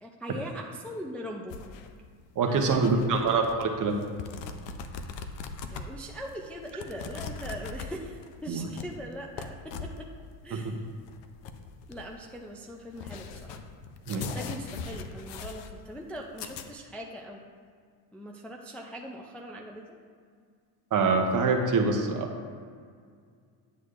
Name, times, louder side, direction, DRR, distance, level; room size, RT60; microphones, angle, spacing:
voice 1, 0.0-1.6 2.5-3.2 5.7-10.1 10.4-10.9 11.9-13.6 14.1-17.4 18.1-19.8, equal, 5° left, -1 dB, 0.4 m, -41 dB
sound 1, 1.5-16.6, left 5 dB, 70° left, 0.7 m, -41 dB
voice 2, 2.4-3.9 8.5-8.6 10.6-10.7 14.1-14.2 20.9-22.5, right 4 dB, 45° right, 3 dB, 0.9 m, -25 dB
9.4 x 6.3 x 2.5 m, 2.1 s
cardioid pair, 115°, 45 cm